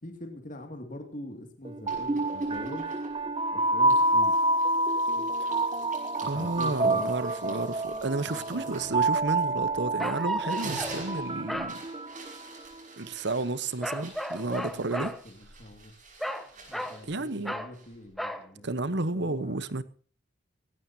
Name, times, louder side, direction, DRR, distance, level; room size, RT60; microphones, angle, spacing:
voice 1, 0.0-2.9 3.5-4.3 6.2-7.1 8.3-8.8 14.7-15.9 16.7-19.6, left 1 dB, 40° left, 2.5 m, -43 dB
sound 1, 1.6-12.7, right 2 dB, 25° right, 0.8 m, -28 dB
sound 2, 1.9-3.4 3.9-10.0 10.3-18.1, right 3 dB, 40° right, 6.1 m, -47 dB
voice 2, 6.2-11.8 13.0-15.1 17.1-17.5 18.6-19.8, right 2 dB, 60° right, 1.1 m, -31 dB
sound 3, 8.4-8.5 10.0-11.0 11.5-11.7 13.8-15.2 16.2-17.0 17.4-17.7 18.2-18.5, equal, ahead, 1.0 m, -34 dB
18.5 x 16.5 x 2.8 m
head